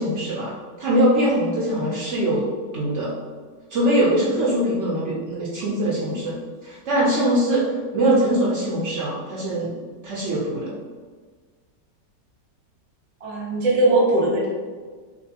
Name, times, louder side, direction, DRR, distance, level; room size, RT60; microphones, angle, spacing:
voice 1, 0.0-2.4 2.7-3.1 3.7-6.3 6.6-7.6 7.9-9.7 10.0-10.7, right 1 dB, 90° right, -6 dB, 0.6 m, -22 dB
voice 2, 13.2-14.5, right 2 dB, 45° right, -5 dB, 0.5 m, -19 dB
3.1 x 3.0 x 2.8 m, 1.5 s
omnidirectional pair, 2.0 m